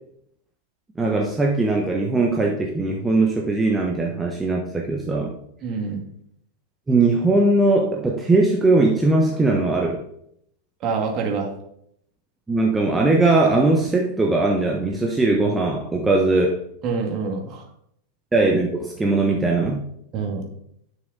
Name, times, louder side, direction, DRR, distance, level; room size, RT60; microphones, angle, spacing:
voice 1, 1.0-5.3 6.9-10.0 12.5-16.6 18.3-19.8, right 2 dB, 10° right, 0 dB, 1.2 m, -20 dB
voice 2, 5.6-6.0 10.8-11.5 16.8-17.6 20.1-20.5, right 5 dB, 35° right, 2 dB, 2.1 m, -26 dB
10.5 x 6.3 x 4.0 m, 0.71 s
figure-of-eight pair, 90°, 0 cm